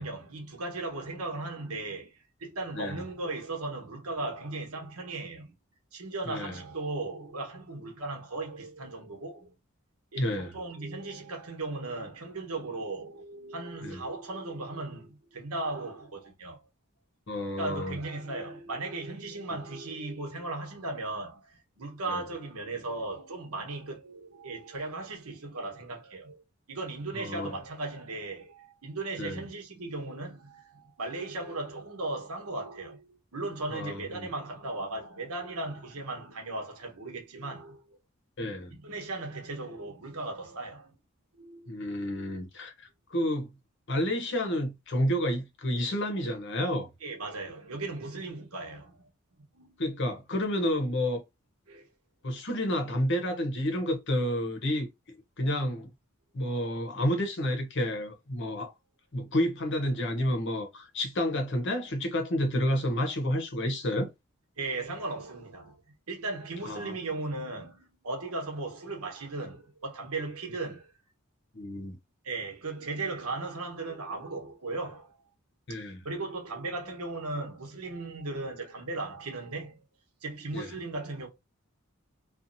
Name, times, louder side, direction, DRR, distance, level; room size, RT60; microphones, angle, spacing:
voice 1, 0.0-2.1 2.4-5.5 5.9-9.5 10.1-16.6 17.6-26.4 26.7-38.0 38.7-41.0 41.3-41.7 47.0-49.1 49.5-49.8 51.7-51.9 64.6-65.8 66.1-70.9 72.2-75.2 75.7-75.8 76.0-79.8 80.2-81.3, right 2 dB, 85° right, 1.1 m, -37 dB
voice 2, 6.3-6.6 10.2-10.6 13.8-14.0 17.3-18.0 22.1-22.2 27.1-27.5 29.2-29.4 33.7-34.3 38.4-38.8 41.7-42.7 43.1-43.5 43.9-46.9 49.8-51.2 52.2-54.9 55.4-55.9 56.3-58.7 59.1-64.1 66.7-66.9 71.5-72.0 75.7-76.0 80.5-80.7, equal, 55° left, 0.8 m, -30 dB
2.6 x 2.3 x 2.6 m
head